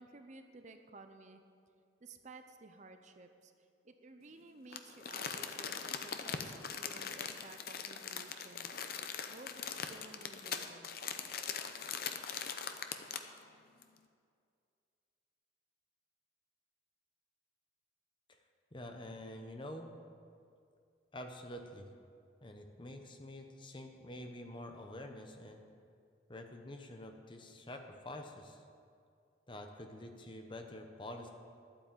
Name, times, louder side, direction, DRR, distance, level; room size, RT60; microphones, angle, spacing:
voice 1, 0.0-1.4 2.0-3.5 3.8-9.0 9.3-9.6 9.9-11.0, right 2 dB, 40° right, 7 dB, 0.7 m, -55 dB
Crumpling crinkling, 4.7-13.4 13.8-13.9, left 7 dB, 55° left, 0.7 m, -41 dB
voice 2, 18.7-19.9 21.1-21.9 22.4-25.6 26.3-28.6 29.5-31.3, left 1 dB, 25° left, 4 dB, 0.9 m, -47 dB
11.5 x 8.9 x 7.4 m, 2.3 s
head